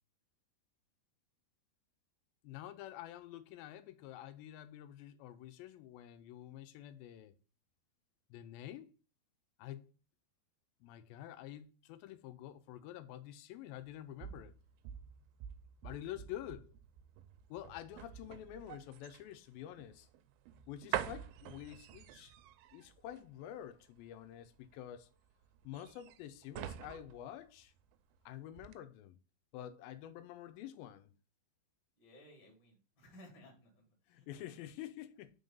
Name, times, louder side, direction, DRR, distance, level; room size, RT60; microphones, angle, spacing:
voice 1, 2.4-7.3 8.3-8.9 9.6-9.9 10.8-14.5 15.8-16.7 17.5-20.1 20.7-22.3 22.7-25.1 25.6-27.7 28.3-29.2 29.5-31.1 34.1-35.3, left 12 dB, 90° left, 2.5 m, -48 dB
sound 1, 13.8-28.2 28.5-28.8, right 11 dB, 85° right, 2.3 m, -47 dB
voice 2, 32.0-34.3 34.5-34.7, left 1 dB, 40° left, 2.3 m, -59 dB
5.5 x 3.8 x 5.3 m
omnidirectional pair, 4.1 m